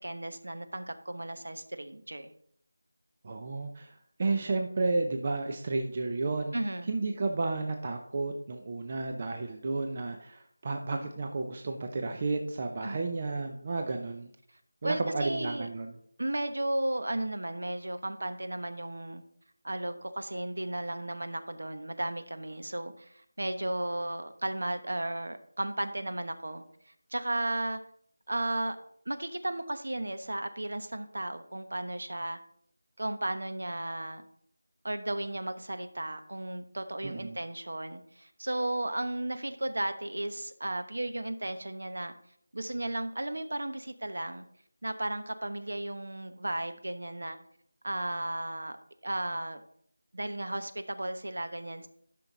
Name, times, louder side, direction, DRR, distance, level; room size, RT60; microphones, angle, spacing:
voice 1, 0.0-2.3 6.5-6.9 12.8-13.1 14.8-15.7 16.2-19.2 19.6-26.6 27.1-27.8 28.3-28.8 29.1-32.4 33.0-34.3 34.8-42.1 42.5-44.4 44.8-47.4 47.8-48.8 49.0-49.6 50.1-51.9, right 1 dB, 70° right, 9 dB, 1.1 m, -34 dB
voice 2, 3.2-6.5 6.9-14.3 14.8-15.9 37.0-37.4, right 3 dB, 20° right, 4 dB, 0.5 m, -32 dB
12.0 x 5.9 x 3.9 m, 0.66 s
figure-of-eight pair, 180°, 0 cm